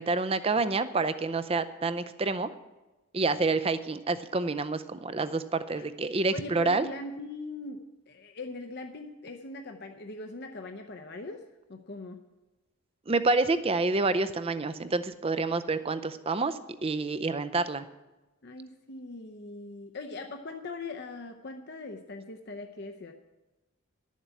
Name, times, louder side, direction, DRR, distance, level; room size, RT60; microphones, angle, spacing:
voice 1, 0.0-2.5 3.1-6.9 13.1-17.8, right 3 dB, 25° right, 12 dB, 0.5 m, -28 dB
voice 2, 6.3-11.4 11.7-12.2 18.4-23.1, left 3 dB, 50° left, 5 dB, 0.7 m, -41 dB
11.5 x 7.3 x 8.2 m, 1.1 s
head